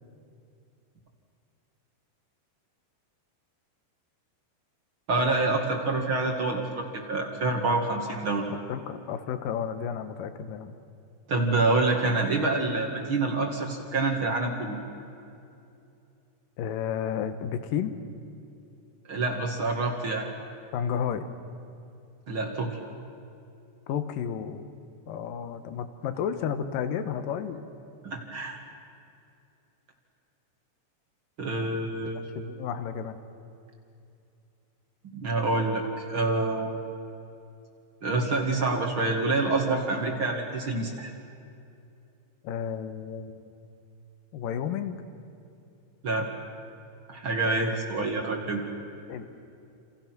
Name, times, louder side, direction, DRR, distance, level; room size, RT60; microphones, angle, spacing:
voice 1, 5.1-8.5 11.3-14.8 19.1-20.3 22.3-22.8 28.0-28.6 31.4-32.2 35.1-36.7 38.0-41.1 46.0-46.3 47.1-48.6, right 3 dB, 45° right, 1 dB, 1.7 m, -27 dB
voice 2, 8.5-10.7 16.6-17.9 20.7-21.3 23.9-24.7 25.1-27.6 32.4-33.2 42.4-43.4 44.3-45.0 47.4-47.8 49.1-49.3, left 8 dB, 70° left, 9 dB, 2.2 m, -32 dB
29.0 x 28.5 x 6.2 m, 2.6 s
omnidirectional pair, 5.4 m